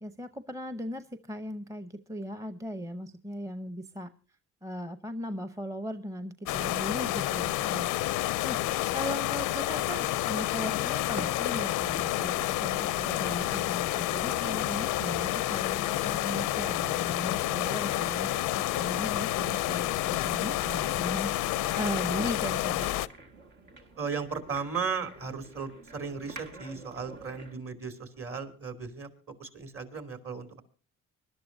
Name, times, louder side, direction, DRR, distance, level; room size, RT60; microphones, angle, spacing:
voice 1, 0.0-4.1 4.6-22.9, equal, 10° right, 10 dB, 0.7 m, -38 dB
sound 1, 6.5-23.1, left 15 dB, 90° left, 0.5 m, -29 dB
sound 2, 11.1-27.6, right 3 dB, 80° right, 2.1 m, -49 dB
voice 2, 24.0-29.1 29.4-30.6, right 5 dB, 45° right, 8 dB, 2.7 m, -36 dB
24.5 x 12.0 x 2.7 m, 0.36 s
cardioid pair, 90°, 30 cm